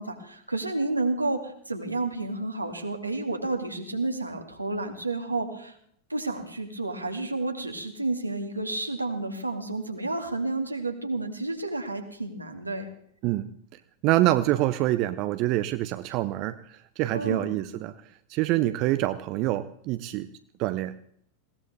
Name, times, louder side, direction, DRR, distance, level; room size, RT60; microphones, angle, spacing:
voice 1, 0.0-5.7 6.1-12.9 17.1-17.5, right 2 dB, 85° right, 4 dB, 2.5 m, -30 dB
voice 2, 14.0-18.0 18.3-20.3 20.6-21.0, right 15 dB, 40° right, 13 dB, 0.8 m, -26 dB
20.5 x 18.0 x 3.5 m, 0.66 s
figure-of-eight pair, 90°, 0 cm